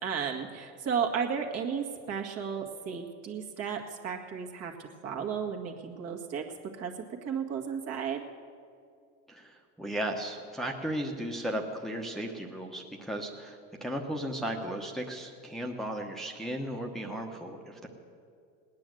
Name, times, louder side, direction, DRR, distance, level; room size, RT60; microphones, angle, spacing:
voice 1, 0.0-6.5 6.7-6.9 7.2-8.2, right 7 dB, 45° right, 2 dB, 1.9 m, -34 dB
voice 2, 9.3-17.9, right 1 dB, ahead, 0 dB, 1.1 m, -35 dB
18.5 x 9.7 x 7.8 m, 2.4 s
supercardioid pair, 115°, 35 cm